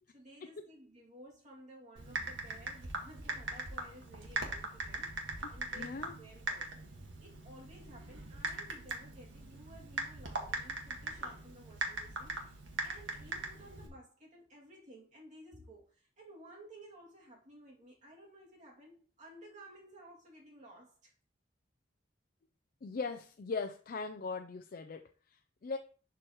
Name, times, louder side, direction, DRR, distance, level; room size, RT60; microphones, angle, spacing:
voice 1, 0.1-5.2 5.5-6.7 7.2-21.1, right 1 dB, 40° right, 2.4 m, -55 dB
Typing, 2.0-13.9, right 3 dB, 85° right, 1.6 m, -41 dB
voice 2, 5.7-6.2 22.8-25.0 25.3-25.8, left 4 dB, 50° left, 0.4 m, -39 dB
11.0 x 4.6 x 3.0 m
head